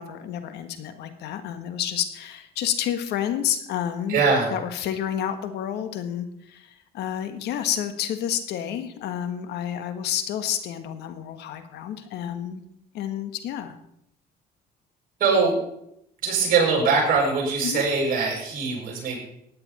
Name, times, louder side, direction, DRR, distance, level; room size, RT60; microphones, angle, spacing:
voice 1, 0.0-4.2 4.5-12.6 12.9-13.7 17.6-17.9, left 10 dB, 80° left, 9 dB, 1.4 m, -30 dB
voice 2, 4.1-4.5 15.2-15.6 16.2-19.2, right 4 dB, 60° right, -1 dB, 6.6 m, -22 dB
16.0 x 9.8 x 4.2 m, 0.76 s
cardioid pair, 110°, 17 cm